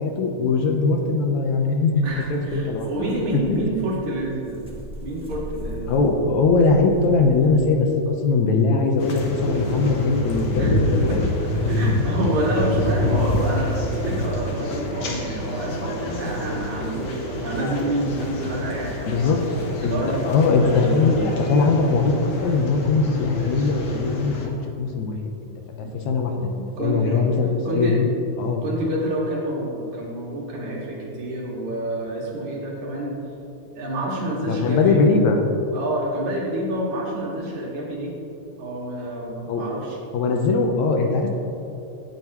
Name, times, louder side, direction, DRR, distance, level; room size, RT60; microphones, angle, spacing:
voice 1, 0.0-3.0 3.5-3.6 5.9-11.3 19.0-19.4 19.8-19.9 20.2-25.2 25.8-28.1 28.4-28.6 34.4-35.4 39.5-39.7 40.1-41.3, left 4 dB, 75° left, 3 dB, 2.2 m, -21 dB
sound 1, 2.0-7.9, right 1 dB, 5° right, 0.4 m, -39 dB
voice 2, 2.0-4.6 5.0-6.0 10.6-10.7 11.0-19.3 19.8-20.3 25.8-26.0 26.8-27.3 27.6-28.0 28.6-33.2 33.7-35.0 35.7-38.1 38.6-40.0, right 1 dB, 70° right, -4 dB, 3.4 m, -28 dB
sound 2, 9.0-24.5, left 1 dB, 55° left, 1.2 m, -27 dB
17.0 x 7.8 x 3.1 m, 2.9 s
omnidirectional pair, 3.4 m